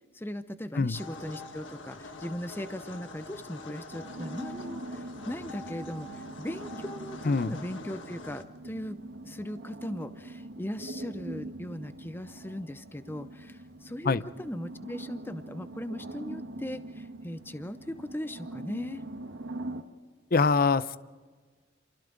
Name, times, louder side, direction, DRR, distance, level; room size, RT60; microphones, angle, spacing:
voice 1, 0.1-9.0 9.2-19.0, left 1 dB, 10° left, 11 dB, 0.7 m, -38 dB
sound 1, 0.9-8.4, left 2 dB, 90° left, 1.7 m, -45 dB
sound 2, 3.9-19.8, right 1 dB, 85° right, 1.5 m, -43 dB
voice 2, 20.3-21.0, left 4 dB, 50° left, 15 dB, 0.6 m, -24 dB
28.0 x 28.0 x 3.9 m, 1.4 s
head